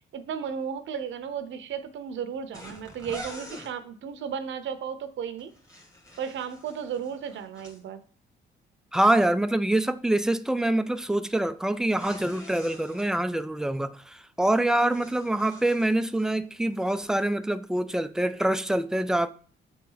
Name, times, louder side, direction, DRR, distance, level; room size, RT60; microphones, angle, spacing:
voice 1, 0.0-5.5 6.2-8.0 14.6-15.0, right 7 dB, 70° right, 0.8 m, -34 dB
sound 1, 2.5-3.7 5.4-7.8 11.9-13.1 14.5-16.4 16.7-17.2, equal, 15° left, 1.9 m, -46 dB
voice 2, 8.9-19.3, right 1 dB, 5° right, 0.4 m, -25 dB
7.4 x 4.1 x 3.9 m
cardioid pair, 90°, 20 cm